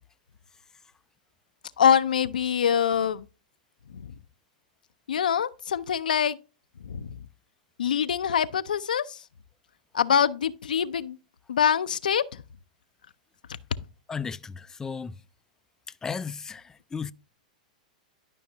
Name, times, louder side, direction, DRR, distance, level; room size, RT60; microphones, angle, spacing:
voice 1, 1.8-3.2 3.9-4.1 5.1-6.4 6.8-7.1 7.8-9.2 9.9-11.2 11.5-12.2, left 8 dB, 85° left, 0.4 m, -24 dB
voice 2, 14.1-15.2 16.0-17.1, left 5 dB, 15° left, 0.3 m, -34 dB
11.5 x 5.3 x 2.7 m
hypercardioid pair, 115°, 4 cm